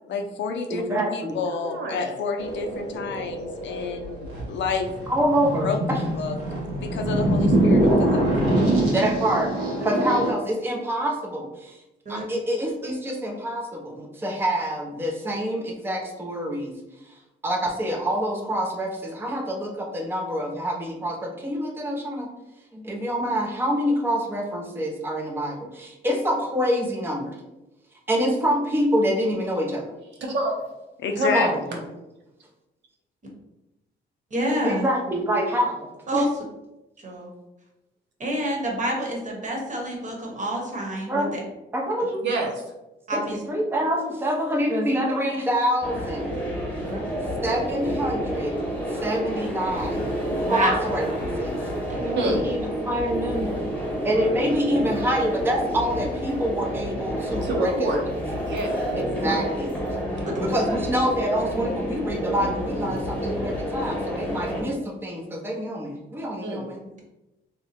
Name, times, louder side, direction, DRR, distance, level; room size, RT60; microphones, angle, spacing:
voice 1, 0.1-4.9 5.6-5.8 6.2-6.4 6.8-8.3 31.0-31.5, left 5 dB, 65° left, 4 dB, 0.5 m, -29 dB
voice 2, 0.7-1.4 5.1-6.0 8.9-9.5 9.8-11.8 12.1-16.8 17.1-22.3 22.7-27.4 28.1-29.8 31.3-31.5 34.6-35.9 36.1-36.2 41.1-41.4 41.7-42.3 43.1-46.6 47.4-48.5 48.9-50.1 50.4-51.6 51.9-53.7 54.0-58.0 58.9-59.7 60.4-66.8, equal, 10° right, 1 dB, 0.6 m, -26 dB
voice 3, 1.5-2.1 30.2-30.7 31.2-31.6 42.2-42.6 52.1-52.5 57.4-58.0 58.4-58.7 60.2-60.8 66.4-66.6, right 1 dB, 65° right, 0 dB, 0.9 m, -27 dB
sound 1, 2.4-10.3, right 1 dB, 85° right, 1.1 m, -24 dB
voice 4, 34.3-34.8 36.1-36.3 37.0-37.3 38.2-41.4 43.1-43.4 46.8-47.0 50.4-50.7 60.2-60.3, right 1 dB, 40° right, 0 dB, 1.1 m, -28 dB
sound 2, 45.8-64.6, equal, 5° left, 1.3 m, -29 dB
2.9 x 2.2 x 4.1 m, 0.98 s
cardioid pair, 90°, 20 cm